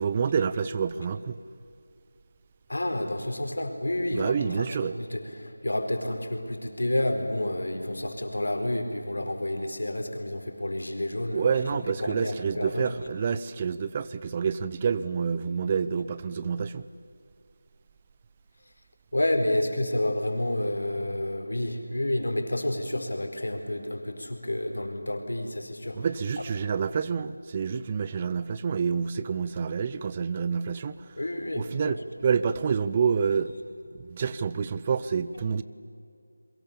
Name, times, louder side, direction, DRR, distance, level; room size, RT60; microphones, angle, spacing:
voice 1, 0.0-1.4 4.1-5.0 11.3-16.9 25.9-31.1 31.5-33.5 33.9-35.6, right 6 dB, 20° right, 14 dB, 0.6 m, -28 dB
voice 2, 2.7-4.7 5.0-11.6 12.0-12.9 19.1-26.0 31.2-32.0, left 1 dB, 80° left, 5 dB, 4.7 m, -30 dB
29.0 x 23.0 x 7.0 m, 2.4 s
figure-of-eight pair, 170°, 0 cm